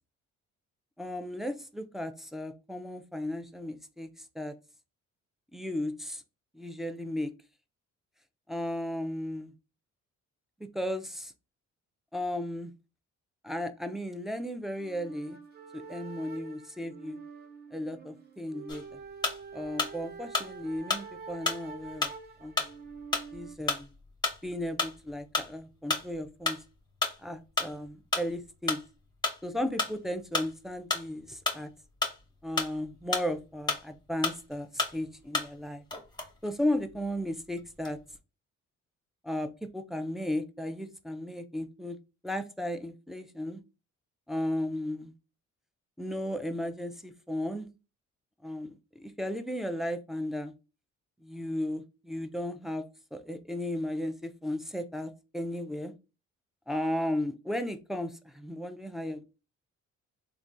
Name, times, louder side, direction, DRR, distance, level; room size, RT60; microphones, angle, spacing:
voice 1, 1.0-4.5 5.5-6.2 6.5-7.3 8.5-9.5 10.7-11.3 12.1-12.7 13.4-15.4 15.7-17.2 17.7-19.0 19.5-22.1 22.4-22.6 23.3-23.9 24.4-26.6 27.2-28.8 29.4-31.7 32.4-35.8 36.4-38.0 39.2-42.0 42.2-43.6 44.3-45.1 46.0-47.7 48.4-50.5 51.2-52.8 53.1-55.9 56.7-59.2, left 1 dB, ahead, 0.3 m, -35 dB
sound 1, 14.7-23.5, right 5 dB, 35° right, 0.8 m, -46 dB
sound 2, 18.7-20.0 20.3-34.0 34.2-35.7 35.9-37.1 37.6-38.1, left 3 dB, 15° left, 0.9 m, -32 dB
3.4 x 2.2 x 2.5 m
cardioid pair, 90°, 30 cm